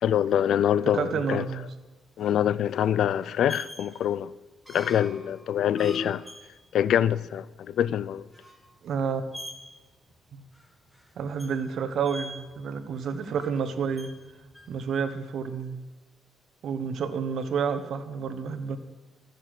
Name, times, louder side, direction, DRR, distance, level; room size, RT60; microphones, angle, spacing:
voice 1, 0.0-1.4 2.2-4.3 4.7-6.2 6.7-8.3, left 10 dB, 70° left, 0.4 m, -25 dB
voice 2, 0.9-1.7 8.8-9.2 10.3-10.4 11.2-14.1 14.7-15.8 16.6-18.8, right 6 dB, 65° right, 1.1 m, -30 dB
sound 1, 1.7-14.9, equal, ahead, 1.8 m, -47 dB
13.5 x 6.6 x 7.8 m
cardioid pair, 90°, 0 cm